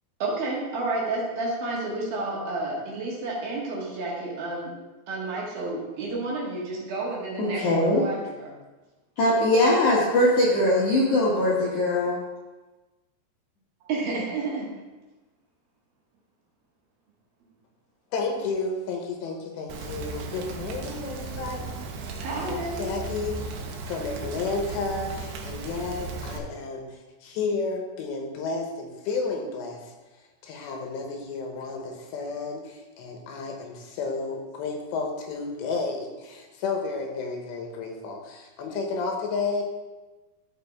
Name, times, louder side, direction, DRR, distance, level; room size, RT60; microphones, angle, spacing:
voice 1, 0.2-4.7 5.1-8.5 13.9-14.7 22.2-22.8, right 2 dB, 60° right, -4 dB, 3.2 m, -30 dB
voice 2, 7.4-8.0 9.2-12.2, left 1 dB, 65° left, -6 dB, 2.0 m, -21 dB
voice 3, 18.1-23.5 23.9-26.9 27.2-29.9 30.4-39.6, left 4 dB, 80° left, 2 dB, 3.2 m, -32 dB
Rain, 19.7-26.4, right 4 dB, 75° right, 2.8 m, -36 dB
14.0 x 4.8 x 3.5 m, 1.2 s
omnidirectional pair, 5.1 m